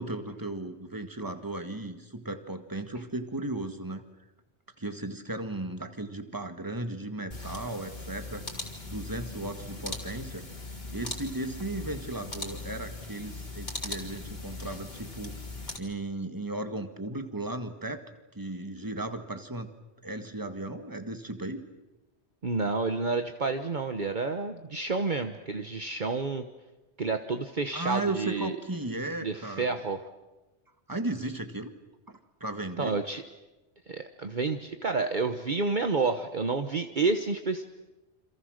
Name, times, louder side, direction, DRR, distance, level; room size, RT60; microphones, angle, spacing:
voice 1, 0.0-4.0 4.8-8.4 8.8-10.5 10.9-15.4 15.7-18.0 18.4-19.7 20.0-21.6 27.7-29.8 30.9-31.7 32.1-33.0, right 2 dB, 20° right, 7 dB, 1.9 m, -35 dB
sound 1, 7.3-15.8, left 2 dB, 40° left, 3.6 m, -39 dB
voice 2, 22.4-26.4 27.0-28.6 29.2-30.0 32.8-33.2 33.9-37.6, right 4 dB, 45° right, 7 dB, 1.3 m, -29 dB
29.0 x 27.0 x 6.5 m, 1.1 s
omnidirectional pair, 1.2 m